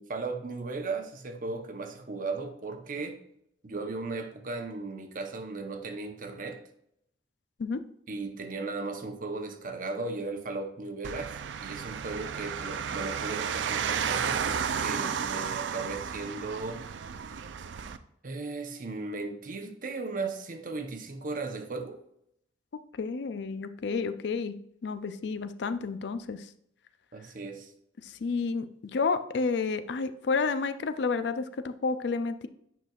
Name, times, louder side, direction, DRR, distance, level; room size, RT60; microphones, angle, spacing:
voice 1, 0.0-3.2 3.6-6.6 8.1-16.8 17.3-17.5 18.2-22.0 27.1-27.7, right 3 dB, 50° right, 6 dB, 0.8 m, -36 dB
sound 1, 11.0-18.0, right 7 dB, 80° right, 0.4 m, -33 dB
voice 2, 23.0-26.5 28.0-32.5, left 4 dB, 65° left, 11 dB, 0.4 m, -30 dB
9.2 x 5.8 x 2.4 m, 0.74 s
head